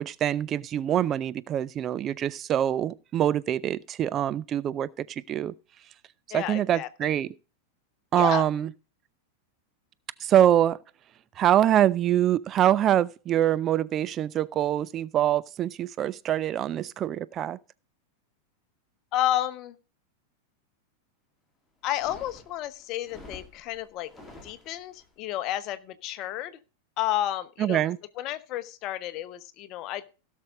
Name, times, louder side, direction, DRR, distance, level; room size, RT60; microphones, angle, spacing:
voice 1, 0.0-5.5 6.3-7.3 8.1-8.7 10.2-10.8 11.4-17.6 27.6-28.0, right 11 dB, 30° right, 0.4 m, -24 dB
voice 2, 6.3-7.1 8.1-8.4 19.1-19.8 21.8-24.1 24.4-26.6 27.0-27.8 28.2-30.0, left 13 dB, 40° left, 0.9 m, -31 dB
sound 1, 21.8-25.1, left 2 dB, 5° left, 3.0 m, -49 dB
16.5 x 6.5 x 3.6 m
figure-of-eight pair, 90°, 0 cm